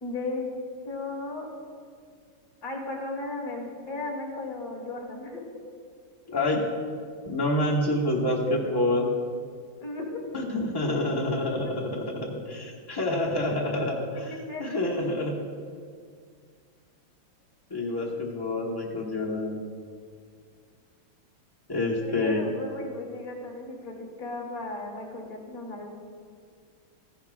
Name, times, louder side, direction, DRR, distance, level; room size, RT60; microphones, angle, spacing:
voice 1, 0.0-0.5 0.8-1.5 2.6-5.5 9.8-10.1 14.5-14.9 22.0-25.9, left 2 dB, 45° left, -1 dB, 1.9 m, -35 dB
voice 2, 6.3-6.7 7.2-9.1 10.3-15.4 17.7-19.6 21.7-22.4, left 1 dB, 15° left, -3 dB, 0.8 m, -27 dB
13.5 x 10.0 x 2.4 m, 2.1 s
omnidirectional pair, 2.3 m